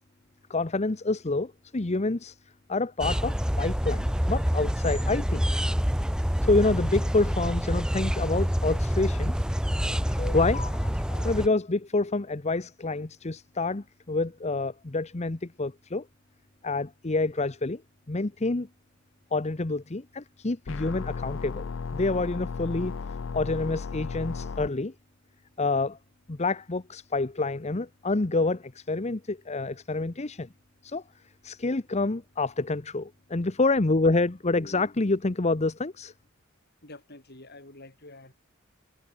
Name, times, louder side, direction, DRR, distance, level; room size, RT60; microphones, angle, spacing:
voice 1, 0.5-2.4 2.7-5.4 6.5-9.3 10.0-16.1 16.6-17.8 18.1-18.7 19.3-22.9 23.3-24.9 25.6-26.0 26.3-30.5 30.8-31.0 31.4-36.1, left 3 dB, 35° left, 0.9 m, -28 dB
sound 1, 3.0-11.5, equal, 5° right, 1.1 m, -27 dB
sound 2, 20.7-24.7, left 5 dB, 70° left, 0.5 m, -35 dB
voice 2, 36.8-38.3, left 2 dB, 55° left, 8.0 m, -47 dB
head